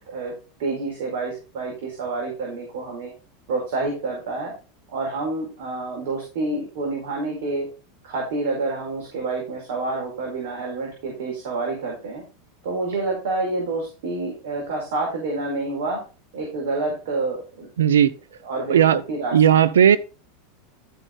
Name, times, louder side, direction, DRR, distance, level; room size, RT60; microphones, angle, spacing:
voice 1, 0.6-3.1 3.5-4.5 4.9-7.7 8.0-12.2 12.6-16.0 16.3-17.7 18.4-19.6, right 3 dB, 70° right, 4.7 m, -28 dB
voice 2, 17.8-18.1 18.7-19.0 19.3-20.0, right 9 dB, 90° right, 0.7 m, -15 dB
12.5 x 5.6 x 4.0 m
hypercardioid pair, 110°, 0 cm